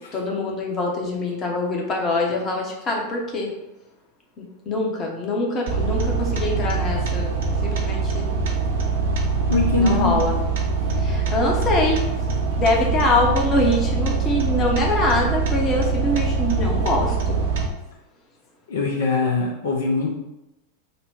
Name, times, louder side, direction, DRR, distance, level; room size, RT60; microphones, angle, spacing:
voice 1, 0.1-3.5 4.4-7.3 7.6-8.4 9.8-10.3 10.9-12.0 12.6-17.4, left 2 dB, 30° left, 0 dB, 0.9 m, -24 dB
sound 1, 5.7-17.7, right 4 dB, 55° right, 0.7 m, -23 dB
voice 2, 9.5-10.1 18.7-20.1, left 3 dB, 60° left, -1 dB, 0.6 m, -22 dB
4.0 x 2.2 x 4.5 m, 0.94 s
figure-of-eight pair, 90°, 0 cm